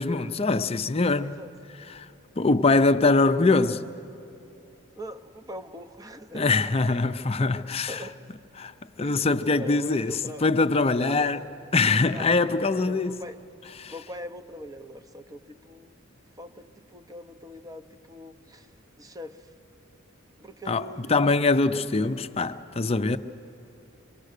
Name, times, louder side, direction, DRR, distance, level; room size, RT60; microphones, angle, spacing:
voice 1, 0.0-1.4 1.9-2.1 2.4-3.8 6.3-8.1 8.6-8.7 9.0-11.4 11.7-13.2 13.8-13.9 20.7-23.2, left 3 dB, 30° left, 0.5 m, -23 dB
voice 2, 5.0-6.5 7.9-8.2 9.0-9.2 9.5-10.5 11.0-11.5 12.1-12.5 12.9-13.4 13.9-16.0 16.4-18.7 18.9-19.5 20.4-21.8, equal, 15° right, 0.7 m, -42 dB
24.5 x 23.5 x 6.6 m
head